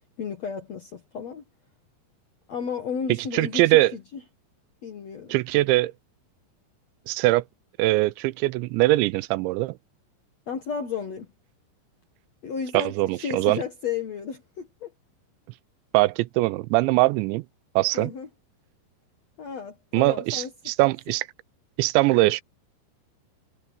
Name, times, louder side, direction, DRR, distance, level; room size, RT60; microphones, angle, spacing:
voice 1, 0.2-1.4 2.5-4.2 4.8-5.4 10.5-11.3 12.4-14.9 17.9-18.3 19.4-20.5, left 6 dB, 60° left, 1.8 m, -33 dB
voice 2, 3.3-3.9 5.3-5.9 7.1-7.4 7.8-9.8 12.7-13.6 15.9-17.4 17.8-18.1 19.9-21.3 21.8-22.4, right 19 dB, 85° right, 3.0 m, -22 dB
omnidirectional pair, 5.2 m